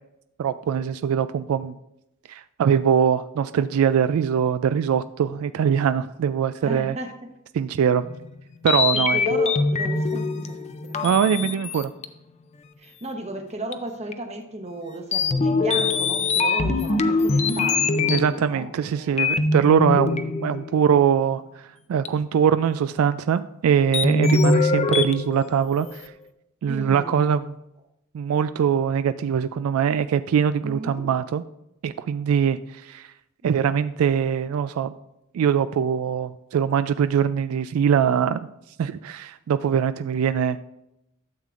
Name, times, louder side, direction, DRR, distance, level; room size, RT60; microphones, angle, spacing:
voice 1, 0.4-1.7 2.3-7.0 7.5-8.0 8.6-9.2 11.0-11.9 18.1-26.1 26.6-27.5 28.1-31.4 31.8-33.1 33.4-34.9 35.3-38.5 38.8-40.6, right 8 dB, 80° right, 13 dB, 0.3 m, -22 dB
voice 2, 6.6-7.2 8.9-11.5 12.8-19.3 26.7-27.3 30.6-31.1, right 1 dB, 30° right, 4 dB, 1.0 m, -35 dB
sound 1, 8.0-12.0 13.7-13.8 14.1-14.2 15.1-18.7 19.2-21.0 22.0-22.1 23.9-26.1, left 3 dB, 30° left, 0.5 m, -23 dB
12.5 x 7.4 x 2.5 m, 0.85 s
head